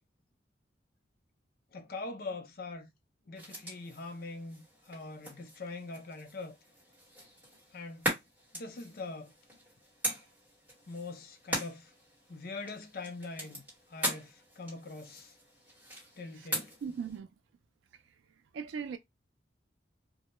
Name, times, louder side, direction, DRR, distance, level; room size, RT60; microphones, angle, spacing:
voice 1, 1.7-2.9 3.3-6.6 7.7-8.1 8.5-9.3 10.9-11.9 12.3-15.3 16.2-16.7, left 3 dB, 50° left, 0.4 m, -43 dB
sound 1, 3.3-17.2, equal, 10° right, 1.1 m, -41 dB
voice 2, 16.8-17.3 17.9-18.0 18.5-19.0, right 6 dB, 85° right, 0.3 m, -38 dB
2.1 x 2.0 x 2.9 m
head